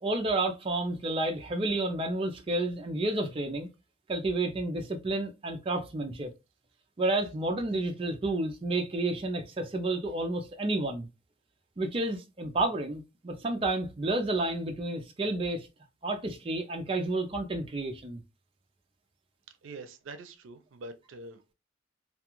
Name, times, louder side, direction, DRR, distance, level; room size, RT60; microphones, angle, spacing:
voice 1, 0.0-3.7 4.1-6.3 7.0-11.1 11.8-15.7 16.0-18.2, right 2 dB, 30° right, 0.4 m, -30 dB
voice 2, 19.6-21.5, right 2 dB, 90° right, 0.5 m, -45 dB
2.3 x 2.3 x 2.9 m
head